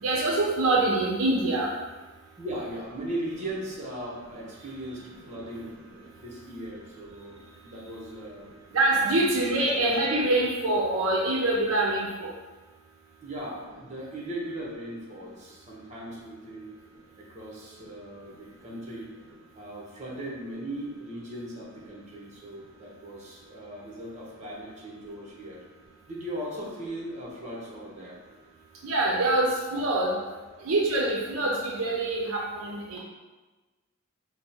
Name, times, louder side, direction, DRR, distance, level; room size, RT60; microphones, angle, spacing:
voice 1, 0.0-1.7 8.7-12.3 28.8-30.2 30.6-33.0, right 2 dB, 75° right, -2 dB, 0.5 m, -25 dB
voice 2, 2.4-5.8 6.2-8.5 8.9-9.2 9.5-9.6 13.2-16.7 17.2-19.1 19.5-25.6 26.1-28.2 29.7-30.2, right 1 dB, 35° right, -4 dB, 0.9 m, -38 dB
3.5 x 2.1 x 4.2 m, 1.2 s
head